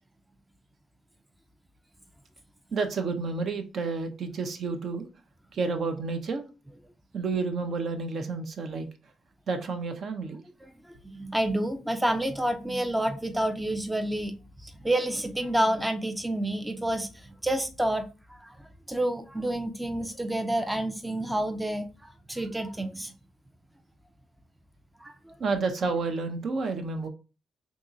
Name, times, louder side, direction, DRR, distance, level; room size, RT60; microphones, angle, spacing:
voice 1, 2.7-5.1 5.5-6.4 7.1-8.9 9.5-10.4 25.4-27.1, right 4 dB, 55° right, 0.6 m, -30 dB
voice 2, 10.6-23.1 25.0-25.3, right 1 dB, 10° right, 0.4 m, -29 dB
3.6 x 3.0 x 2.6 m
cardioid pair, 90°, 0 cm